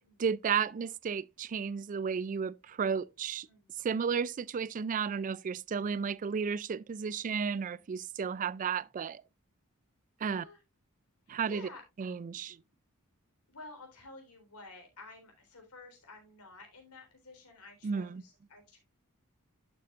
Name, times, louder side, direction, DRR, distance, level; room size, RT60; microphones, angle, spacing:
voice 1, 0.2-3.5 3.8-9.2 10.2-10.4 11.3-11.7 12.0-12.6 17.8-18.2, right 6 dB, 35° right, 0.3 m, -33 dB
voice 2, 11.3-11.8 13.5-18.8, left 3 dB, 90° left, 3.8 m, -51 dB
11.5 x 7.0 x 2.4 m
head